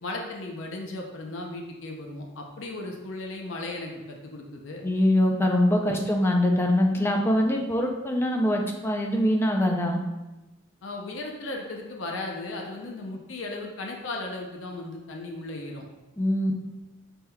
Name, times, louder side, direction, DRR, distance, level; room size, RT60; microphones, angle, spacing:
voice 1, 0.0-4.8 5.9-6.0 10.8-15.8, left 2 dB, 65° left, 1 dB, 0.5 m, -36 dB
voice 2, 4.8-10.0 16.2-16.5, left 1 dB, 10° left, 1 dB, 0.4 m, -23 dB
5.7 x 3.5 x 2.2 m, 1.0 s
head